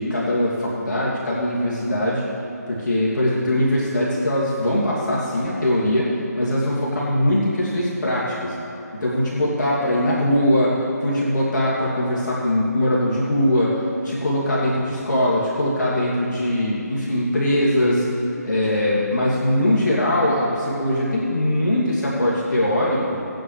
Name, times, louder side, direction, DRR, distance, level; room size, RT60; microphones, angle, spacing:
voice 1, 0.0-2.2 2.7-6.1 6.4-8.6 9.0-10.8 11.0-18.1 18.4-23.2, left 1 dB, 80° left, -6 dB, 2.5 m, -21 dB
18.0 x 9.5 x 3.2 m, 2.8 s
figure-of-eight pair, 160°, 10 cm